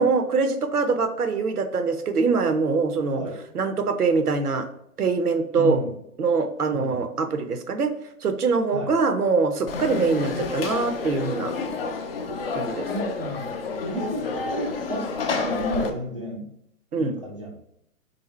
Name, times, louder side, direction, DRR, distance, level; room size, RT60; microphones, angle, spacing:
voice 1, 0.0-3.2 3.5-4.7 5.0-5.8 6.2-7.9 8.2-11.5 12.5-12.9 16.9-17.2, right 4 dB, 75° right, 9 dB, 0.7 m, -23 dB
voice 2, 5.5-5.9 6.7-7.0 8.7-9.0 12.8-13.5 13.8-16.5 17.0-17.6, left 1 dB, 25° right, -1 dB, 0.4 m, -32 dB
Conversation / Crowd, 9.7-15.9, left 4 dB, 40° left, 0.5 m, -29 dB
3.7 x 2.7 x 4.2 m, 0.75 s
figure-of-eight pair, 125°, 46 cm